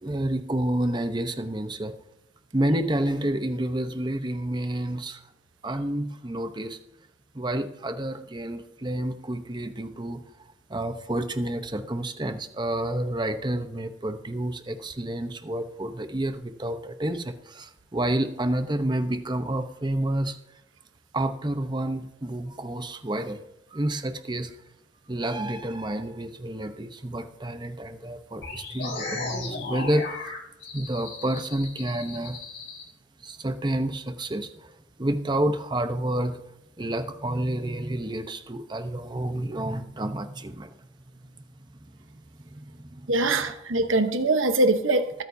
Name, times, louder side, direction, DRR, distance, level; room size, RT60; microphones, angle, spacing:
voice 1, 0.0-1.9 2.5-5.2 5.6-6.8 7.3-10.2 10.7-20.4 21.1-23.4 23.7-24.5 25.1-30.2 30.7-32.4 33.2-34.7 35.0-36.4 36.8-40.7 41.7-41.8 42.5-42.6 42.9-43.1 43.3-43.4, right 1 dB, 20° right, 8 dB, 0.9 m, -29 dB
sound 1, 28.4-32.8, left 3 dB, 60° left, 4.1 m, -36 dB
voice 2, 43.1-45.2, right 2 dB, 85° right, 8 dB, 1.0 m, -23 dB
20.5 x 9.2 x 2.7 m, 0.86 s
head